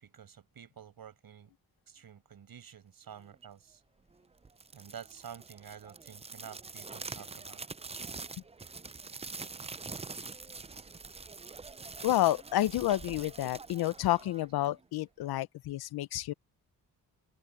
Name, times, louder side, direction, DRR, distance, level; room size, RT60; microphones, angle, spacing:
voice 1, 0.0-1.5 1.9-3.8 4.7-7.6, right 8 dB, 70° right, 6.0 m, -50 dB
sound 1, 4.5-14.8, right 4 dB, 15° right, 0.5 m, -45 dB
voice 2, 12.0-16.3, left 14 dB, 85° left, 0.7 m, -30 dB
open air
cardioid pair, 65°, 37 cm